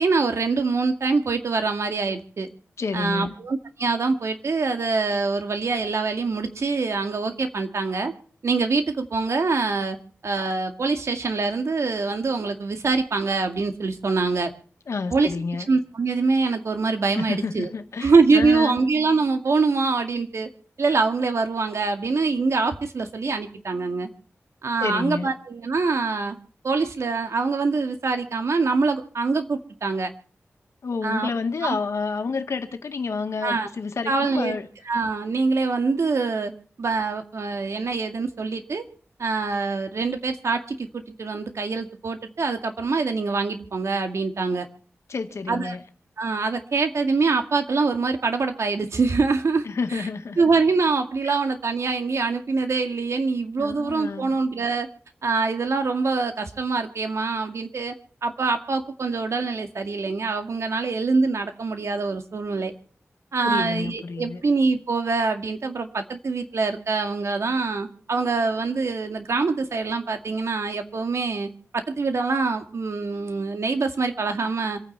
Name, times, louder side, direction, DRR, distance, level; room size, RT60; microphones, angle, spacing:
voice 1, 0.0-2.5 2.9-8.1 8.4-10.0 10.2-14.5 15.1-15.3 15.7-17.7 18.0-20.5 20.8-24.1 24.6-26.4 26.6-30.1 31.0-31.3 31.6-31.8 33.4-33.7 34.1-34.6 34.9-36.5 36.8-38.8 39.2-44.7 45.5-45.8 46.2-49.6 49.9-50.1 50.4-54.9 55.2-57.9 58.2-62.7 63.3-74.8, right 4 dB, 80° right, 6 dB, 2.1 m, -24 dB
voice 2, 2.8-3.4 14.9-15.7 17.1-18.8 24.8-25.3 30.8-34.7 45.1-45.8 49.7-50.4 51.2-51.4 53.6-54.4 63.4-64.4, left 4 dB, 85° left, 7 dB, 1.8 m, -29 dB
27.0 x 9.6 x 4.2 m, 0.43 s
wide cardioid pair, 105°, 5 cm